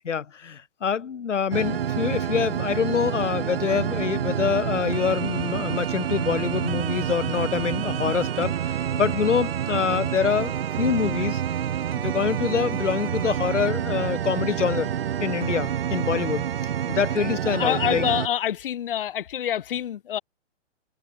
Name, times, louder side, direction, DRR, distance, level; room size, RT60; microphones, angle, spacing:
voice 1, 0.0-11.4 12.0-14.9 15.2-16.5 16.9-18.0, left 7 dB, 75° left, 3.7 m, -25 dB
sound 1, 1.5-18.3, right 9 dB, 50° right, 0.9 m, -28 dB
voice 2, 17.5-20.2, left 10 dB, 45° left, 1.5 m, -26 dB
hypercardioid pair, 165°, 37 cm